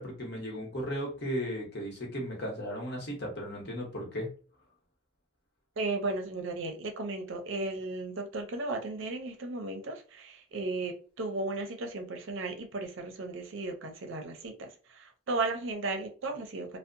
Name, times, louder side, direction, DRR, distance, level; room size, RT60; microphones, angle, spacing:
voice 1, 0.0-4.3, equal, 50° left, 0.9 m, -36 dB
voice 2, 5.8-16.8, right 2 dB, 60° right, 0.5 m, -35 dB
2.6 x 2.0 x 2.5 m
head